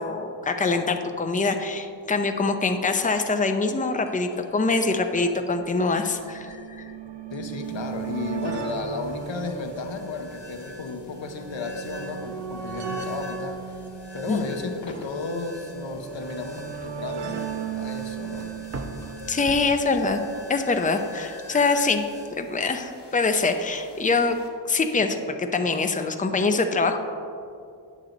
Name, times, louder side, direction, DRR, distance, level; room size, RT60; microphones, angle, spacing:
voice 1, 0.0-6.9 14.3-14.4 19.3-20.2 20.5-22.0 22.4-24.4 24.7-27.0, left 3 dB, 20° left, 6 dB, 0.5 m, -24 dB
sound 1, 4.1-4.2 4.3-4.4 5.3-20.5 21.5-21.6 21.8-21.9, right 7 dB, 70° right, 0.7 m, -36 dB
voice 2, 7.3-13.8 14.1-18.6, left 4 dB, 85° left, 5 dB, 0.7 m, -34 dB
sound 2, 7.6-24.5, left 2 dB, 65° left, 1.3 m, -44 dB
sound 3, 16.3-20.4 20.8-21.3, right 2 dB, 35° right, 0.7 m, -41 dB
8.9 x 6.3 x 3.9 m, 2.4 s
wide cardioid pair, 50°, 44 cm